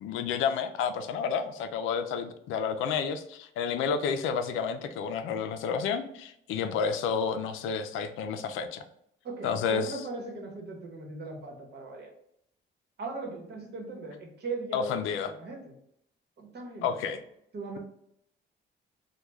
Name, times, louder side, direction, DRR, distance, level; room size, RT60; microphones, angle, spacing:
voice 1, 0.0-8.8 9.4-10.0 14.7-15.3 16.8-17.2, left 6 dB, 90° left, 9 dB, 0.4 m, -30 dB
voice 2, 9.2-12.1 13.0-15.7 16.4-17.0 17.5-17.8, right 3 dB, 55° right, 1 dB, 1.0 m, -39 dB
3.0 x 2.2 x 3.4 m, 0.73 s
cardioid pair, 90°, 20 cm